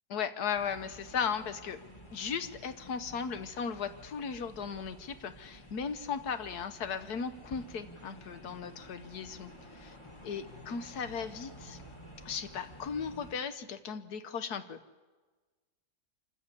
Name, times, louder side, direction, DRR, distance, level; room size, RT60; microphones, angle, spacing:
voice 1, 0.1-1.8 2.1-9.5 9.8-10.0 10.2-11.8 12.2-14.8, left 6 dB, 85° left, 11 dB, 1.6 m, -36 dB
sound 1, 0.5-13.4, equal, 20° left, 2.1 m, -52 dB
25.5 x 15.0 x 8.3 m, 1.3 s
omnidirectional pair, 1.6 m